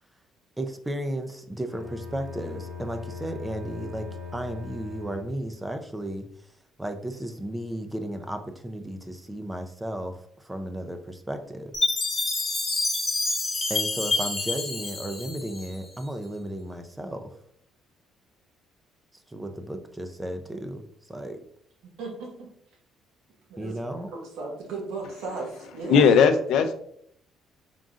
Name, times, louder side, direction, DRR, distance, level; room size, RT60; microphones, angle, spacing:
voice 1, 0.6-6.5 6.8-11.7 13.7-17.4 19.1-21.4 23.6-24.1, right 1 dB, 10° right, 6 dB, 0.4 m, -34 dB
Bowed string instrument, 1.7-5.6, left 5 dB, 55° right, 1.6 m, -40 dB
Chime, 11.7-16.0, left 3 dB, 30° left, 0.9 m, -28 dB
voice 2, 21.8-22.5 23.5-26.0, right 3 dB, 85° right, -1 dB, 1.3 m, -36 dB
voice 3, 25.9-26.7, left 6 dB, 75° left, 8 dB, 0.4 m, -18 dB
3.8 x 3.7 x 2.4 m, 0.67 s
cardioid pair, 100°, 0 cm